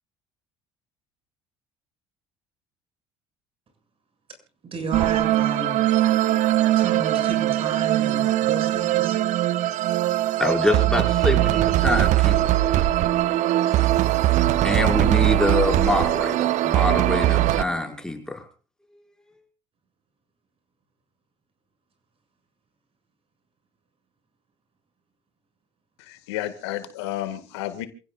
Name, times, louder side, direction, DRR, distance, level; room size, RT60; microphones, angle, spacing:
voice 1, 4.6-5.8 6.8-9.2, right 4 dB, 45° right, 6 dB, 7.7 m, -32 dB
sound 1, 4.9-17.6, right 14 dB, 65° right, 0.9 m, -21 dB
voice 2, 10.4-12.9 14.6-18.4, left 2 dB, 5° left, 2 dB, 6.0 m, -25 dB
voice 3, 26.0-27.9, left 13 dB, 80° left, 10 dB, 2.0 m, -31 dB
28.0 x 16.5 x 2.5 m, 0.36 s
hypercardioid pair, 65°, 14 cm